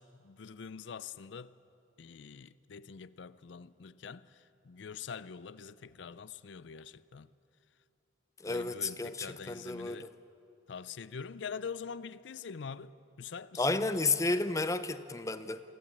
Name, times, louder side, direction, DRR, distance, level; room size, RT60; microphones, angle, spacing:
voice 1, 0.0-1.5 2.0-7.3 8.4-10.1 10.7-13.7, left 6 dB, 70° left, 0.5 m, -44 dB
voice 2, 8.4-10.1 13.6-15.6, left 3 dB, 15° left, 0.6 m, -32 dB
23.5 x 15.0 x 8.6 m
head